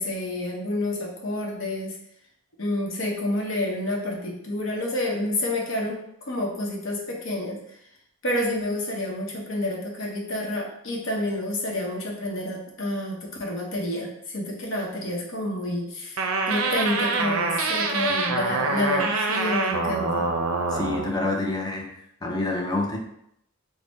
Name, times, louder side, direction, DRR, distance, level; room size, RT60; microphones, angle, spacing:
voice 1, 0.0-1.9 2.6-7.6 8.2-16.2 16.5-20.3, left 1 dB, 60° left, -1 dB, 0.8 m, -29 dB
sound 1, 16.2-21.1, right 3 dB, 70° right, 0.4 m, -25 dB
voice 2, 20.7-21.9 22.2-23.0, left 2 dB, 20° left, 0 dB, 0.5 m, -27 dB
3.9 x 2.1 x 3.5 m, 0.74 s
head